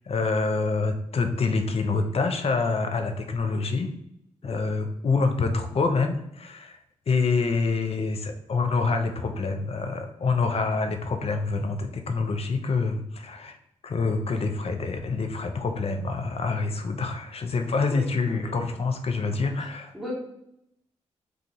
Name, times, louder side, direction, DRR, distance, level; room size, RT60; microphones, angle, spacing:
voice 1, 0.0-3.9 4.4-6.8 7.1-13.6 13.8-19.9, left 4 dB, 50° left, 6 dB, 0.5 m, -26 dB
voice 2, 17.9-18.5 19.9-20.1, equal, ahead, -4 dB, 1.2 m, -37 dB
2.5 x 2.4 x 4.0 m, 0.79 s
supercardioid pair, 50°, 13 cm